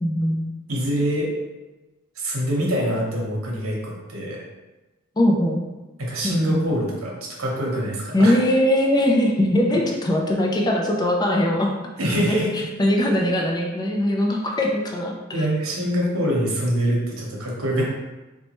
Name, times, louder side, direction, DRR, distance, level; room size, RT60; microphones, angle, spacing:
voice 1, 0.0-0.5 5.2-5.6 6.2-6.7 8.1-11.7 12.3-15.5, left 1 dB, 20° left, 0 dB, 0.4 m, -21 dB
voice 2, 0.7-1.3 2.2-4.4 6.0-8.3 9.7-9.8 12.0-12.7 15.3-17.8, equal, 75° right, -3 dB, 0.9 m, -24 dB
4.1 x 2.2 x 2.9 m, 1.1 s
head